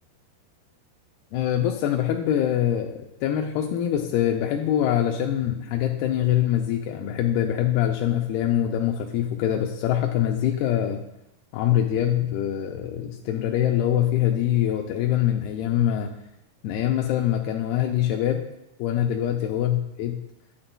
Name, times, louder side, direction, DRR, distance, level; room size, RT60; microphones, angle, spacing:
voice 1, 1.3-11.0 11.5-16.1 16.6-18.4 18.8-20.2, left 11 dB, 80° left, 1 dB, 2.3 m, -24 dB
9.9 x 8.6 x 2.2 m, 0.85 s
omnidirectional pair, 4.9 m